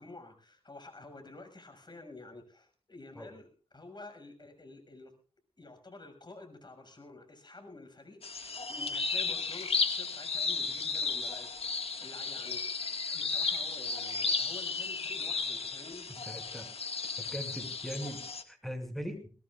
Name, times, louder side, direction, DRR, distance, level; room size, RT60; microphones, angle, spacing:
voice 1, 0.0-5.2 5.6-16.1, left 2 dB, 45° left, 5 dB, 6.3 m, -50 dB
sound 1, 8.2-18.4, left 4 dB, 65° left, 1.8 m, -34 dB
voice 2, 16.3-16.7 17.2-18.2 18.5-19.3, equal, ahead, 6 dB, 6.1 m, -40 dB
21.5 x 19.5 x 2.4 m, 0.38 s
cardioid pair, 40°, 11 cm